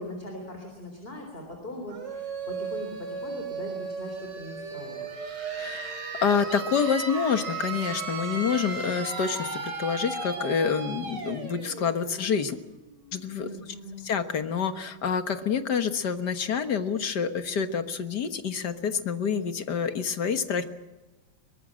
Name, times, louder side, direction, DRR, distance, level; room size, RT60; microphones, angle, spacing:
voice 1, 0.0-5.1 13.4-14.1, left 1 dB, 25° left, 3 dB, 4.0 m, -40 dB
sound 1, 1.9-13.4, right 4 dB, 55° right, 3.9 m, -36 dB
voice 2, 5.5-12.6 13.1-13.5 14.0-20.6, left 6 dB, 55° left, 9 dB, 1.9 m, -27 dB
23.0 x 20.0 x 7.6 m, 1.1 s
omnidirectional pair, 2.3 m